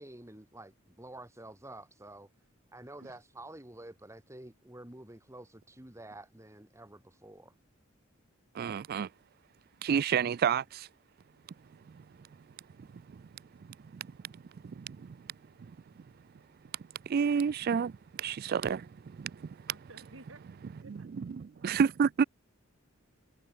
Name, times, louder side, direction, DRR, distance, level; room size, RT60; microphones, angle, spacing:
voice 1, 0.0-2.3 2.7-7.5, right 1 dB, 15° right, 2.4 m, -49 dB
voice 2, 8.5-9.1 9.8-10.9 11.9-12.0 12.9-13.2 13.6-15.2 15.6-15.7 17.1-19.7 20.9-22.2, right 6 dB, 45° right, 0.3 m, -31 dB
voice 3, 19.7-21.1, right 2 dB, 70° right, 5.8 m, -54 dB
head